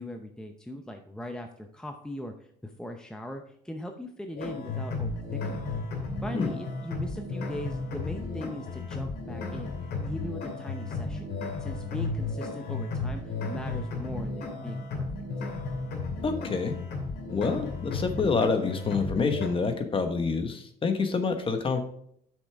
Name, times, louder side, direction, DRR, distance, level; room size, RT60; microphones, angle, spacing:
voice 1, 0.0-5.7 6.2-9.7 10.1-11.3 11.6-15.1, left 1 dB, 5° left, 4 dB, 0.7 m, -40 dB
sound 1, 4.4-19.5, left 3 dB, 70° left, 2.6 m, -34 dB
voice 2, 16.2-16.7 17.3-21.8, left 4 dB, 30° left, 7 dB, 1.3 m, -27 dB
8.1 x 6.4 x 3.5 m, 0.70 s
cardioid pair, 110°, 17 cm